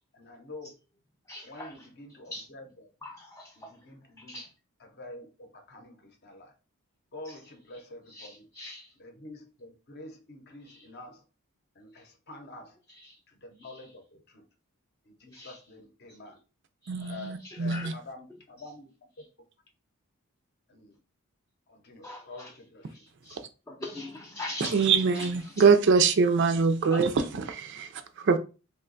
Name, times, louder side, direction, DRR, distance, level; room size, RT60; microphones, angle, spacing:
voice 1, 0.1-0.7 1.4-2.9 3.6-4.4 4.8-6.5 7.1-8.4 9.0-11.2 12.3-12.8 13.6-14.4 15.1-16.4 17.0-17.3 17.6-18.9 19.2-19.3 20.7-21.0 21.7-23.0, left 2 dB, 50° left, 0.7 m, -47 dB
voice 2, 1.3-1.9 2.3-2.5 3.0-3.7 4.3-4.5 7.2-7.3 8.1-8.9 10.7-10.9 12.9-13.2 13.7-13.8 15.3-15.6 16.8-17.9 22.0-22.5 22.9-23.4 23.7-25.6 26.9-27.0, left 1 dB, 15° left, 0.3 m, -42 dB
voice 3, 16.9-17.9 24.6-28.4, right 5 dB, 55° right, 0.4 m, -24 dB
2.9 x 2.2 x 3.9 m
head